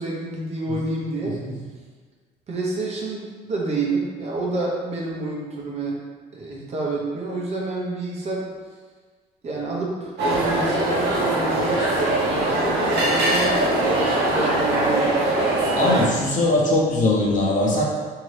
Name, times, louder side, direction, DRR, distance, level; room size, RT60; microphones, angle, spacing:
voice 1, 0.0-1.4 2.5-6.0 6.3-8.5 9.4-15.2, right 2 dB, 40° right, -3 dB, 0.8 m, -28 dB
sound 1, 10.2-16.1, right 1 dB, 90° right, 0.9 m, -21 dB
voice 2, 15.7-17.8, left 2 dB, 45° left, -4 dB, 0.9 m, -20 dB
3.7 x 2.8 x 3.2 m, 1.5 s
cardioid pair, 110°, 17 cm